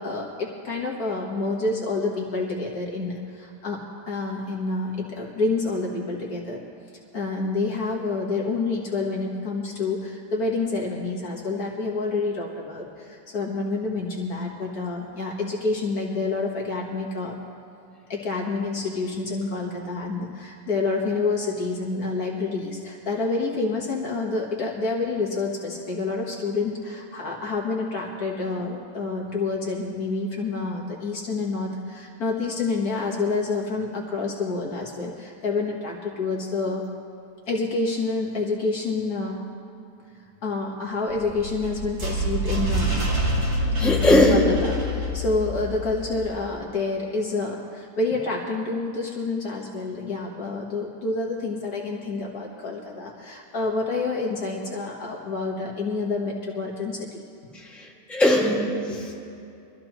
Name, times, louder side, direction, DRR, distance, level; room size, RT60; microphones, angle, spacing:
voice 1, 0.0-6.6 7.1-17.4 18.1-36.8 37.5-39.5 40.4-43.0 43.8-57.2 58.9-59.0, left 3 dB, 60° left, -2 dB, 1.8 m, -28 dB
sound 1, 41.1-46.2, equal, 65° right, 3.0 m, -26 dB
voice 2, 43.8-44.5 57.5-59.1, left 1 dB, ahead, -5 dB, 1.9 m, -20 dB
23.5 x 13.5 x 3.0 m, 2.6 s
omnidirectional pair, 1.8 m